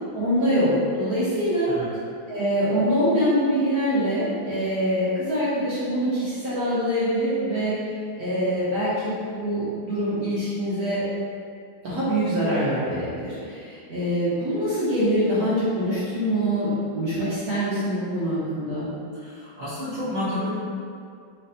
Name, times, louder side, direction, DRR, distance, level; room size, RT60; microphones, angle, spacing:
voice 1, 0.1-1.7 2.3-11.0 11.8-18.9, equal, 60° right, -11 dB, 1.0 m, -24 dB
voice 2, 1.7-2.0 19.1-20.5, left 1 dB, 90° right, -15 dB, 0.4 m, -30 dB
3.3 x 3.2 x 2.7 m, 2.3 s
omnidirectional pair, 2.3 m